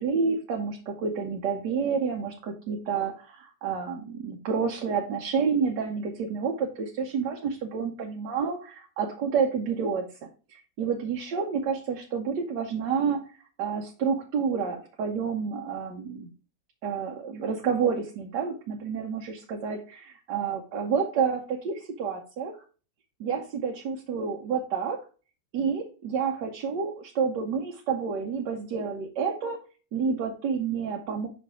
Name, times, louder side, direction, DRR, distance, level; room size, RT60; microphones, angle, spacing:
voice 1, 0.0-10.1 10.5-13.2 13.6-16.3 16.8-22.5 23.2-25.0 25.5-29.6 29.9-31.3, right 6 dB, 85° right, 1 dB, 1.5 m, -29 dB
5.8 x 4.2 x 4.7 m, 0.36 s
omnidirectional pair, 1.8 m